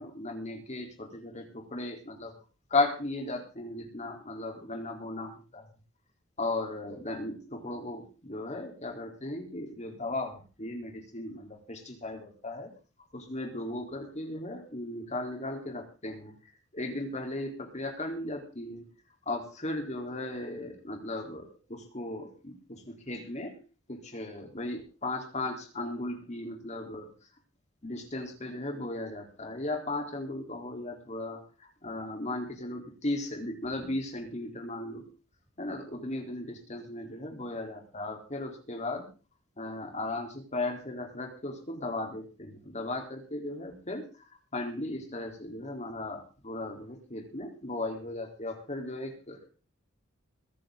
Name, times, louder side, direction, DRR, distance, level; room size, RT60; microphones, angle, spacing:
voice 1, 0.0-2.4 2.7-5.7 6.4-12.7 13.1-16.3 16.7-18.9 19.3-23.6 23.9-27.1 27.8-35.1 35.6-39.1 39.6-44.1 44.5-49.5, left 2 dB, 35° left, 3 dB, 3.6 m, -36 dB
22.0 x 10.5 x 3.9 m, 0.34 s
head